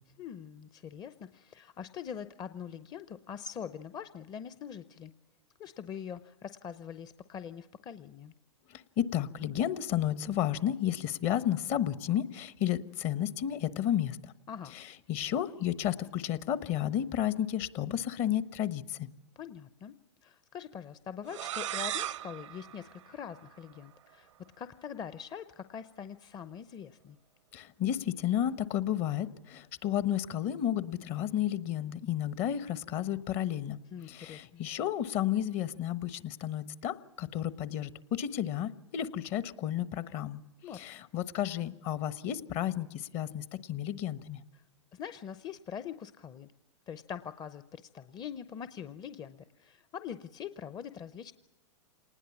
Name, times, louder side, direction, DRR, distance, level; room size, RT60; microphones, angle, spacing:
voice 1, 0.2-5.1 5.6-8.3 14.5-14.8 19.4-19.9 20.2-24.3 24.6-27.2 33.9-34.6 40.6-40.8 44.5-44.6 44.9-46.5 46.9-51.3, left 8 dB, 25° left, 12 dB, 0.7 m, -43 dB
voice 2, 8.7-14.3 15.1-19.1 27.5-33.8 34.1-40.4 40.7-44.4, left 11 dB, 45° left, 15 dB, 1.1 m, -32 dB
sound 1, 21.3-23.9, right 12 dB, 75° right, 0.7 m, -38 dB
26.5 x 19.5 x 7.2 m, 0.97 s
hypercardioid pair, 115°, 16 cm